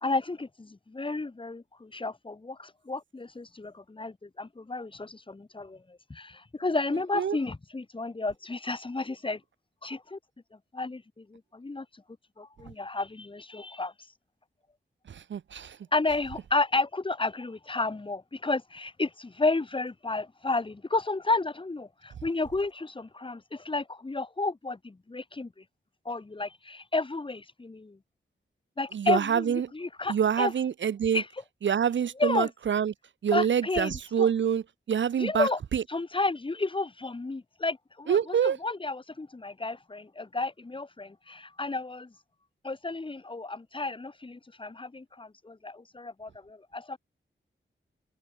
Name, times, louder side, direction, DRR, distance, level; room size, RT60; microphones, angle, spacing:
voice 1, 0.0-9.4 9.8-10.2 10.7-12.0 12.4-13.9 15.9-25.6 26.0-28.0 28.8-30.5 31.1-31.3 32.2-32.5 33.3-34.3 35.2-35.6 35.9-42.1 42.6-47.0, left 3 dB, 25° left, 1.2 m, -32 dB
voice 2, 15.1-15.8 28.9-29.7 30.1-31.2 31.6-32.9 33.2-35.8 38.1-38.6, right 8 dB, 70° right, 0.5 m, -26 dB
open air
wide cardioid pair, 135°, 20 cm